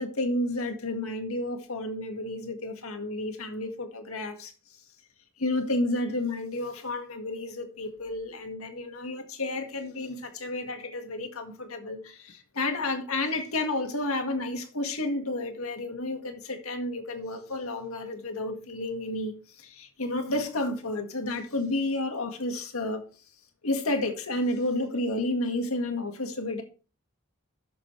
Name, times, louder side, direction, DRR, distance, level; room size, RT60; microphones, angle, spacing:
voice 1, 0.0-4.5 5.4-23.0 23.6-26.6, left 2 dB, 80° left, 1.8 m, -31 dB
12.5 x 6.6 x 3.2 m
head